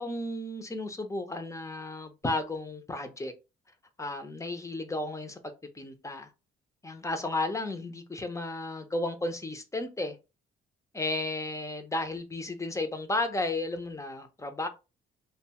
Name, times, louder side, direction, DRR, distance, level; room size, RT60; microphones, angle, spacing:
voice 1, 0.0-3.3 4.0-5.4 5.7-6.3 6.8-10.2 10.9-14.7, left 2 dB, 15° left, 0.5 m, -33 dB
2.6 x 2.3 x 2.8 m
cardioid pair, 90°, 20 cm